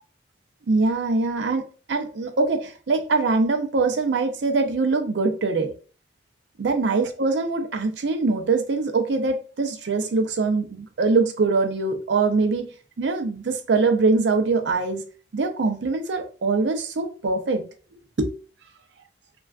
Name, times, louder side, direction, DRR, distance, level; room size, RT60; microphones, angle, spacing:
voice 1, 0.7-5.7 6.6-12.7 13.0-15.0 15.3-17.6 18.2-18.3, right 3 dB, 70° right, 0.5 m, -23 dB
3.3 x 2.3 x 2.3 m
head